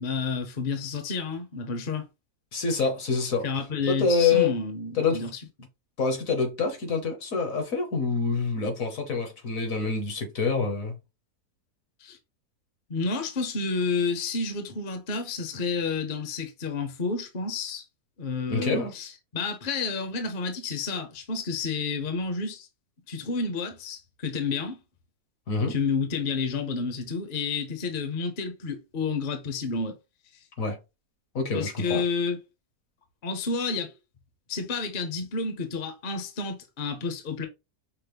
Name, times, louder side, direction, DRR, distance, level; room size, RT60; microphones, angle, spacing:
voice 1, 0.0-2.1 3.4-5.4 12.0-12.2 12.9-17.8 18.2-22.7 23.1-24.8 25.7-30.0 31.5-32.4 33.2-33.9 34.5-37.5, left 4 dB, 40° left, 0.8 m, -30 dB
voice 2, 2.5-3.5 3.9-4.6 4.9-5.3 6.0-11.0 18.5-18.9 25.5-25.7 30.6-30.8 31.3-32.0, left 4 dB, 65° left, 1.4 m, -26 dB
5.8 x 2.1 x 3.3 m
omnidirectional pair, 1.6 m